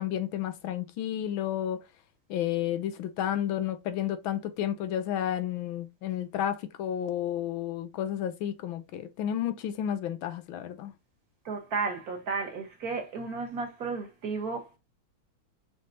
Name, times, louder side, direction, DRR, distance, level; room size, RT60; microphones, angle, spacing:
voice 1, 0.0-1.8 2.3-10.9, left 10 dB, 85° left, 1.5 m, -31 dB
voice 2, 11.4-14.8, right 4 dB, 50° right, 1.5 m, -33 dB
5.4 x 3.4 x 2.7 m
omnidirectional pair, 2.2 m